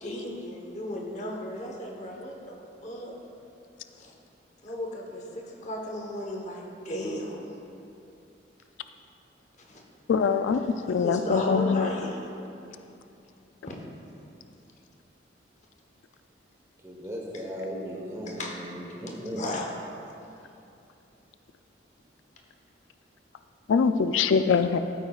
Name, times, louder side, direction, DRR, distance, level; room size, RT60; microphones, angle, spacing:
voice 1, 0.0-2.5 2.8-3.1 3.9-4.1 4.6-7.4 9.7-9.8 10.4-12.3 13.7-13.8 18.3-18.5 19.4-19.6, left 1 dB, 40° left, 0 dB, 1.0 m, -35 dB
voice 2, 10.1-11.9 23.7-24.8, left 6 dB, 85° left, 9 dB, 0.3 m, -23 dB
voice 3, 16.8-19.4, equal, 15° right, -3 dB, 1.0 m, -36 dB
12.5 x 9.2 x 2.4 m, 2.7 s
head